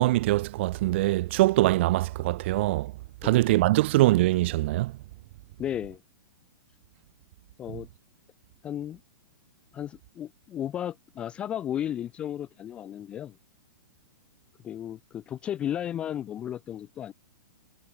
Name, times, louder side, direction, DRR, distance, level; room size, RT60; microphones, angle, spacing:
voice 1, 0.0-2.9 3.2-4.9 7.7-7.8, right 17 dB, 35° right, 1.3 m, -23 dB
voice 2, 5.6-6.0 7.6-7.9 8.6-9.0 9.7-13.4 14.6-17.1, left 10 dB, 10° left, 0.4 m, -34 dB
hypercardioid pair, 175°, 11 cm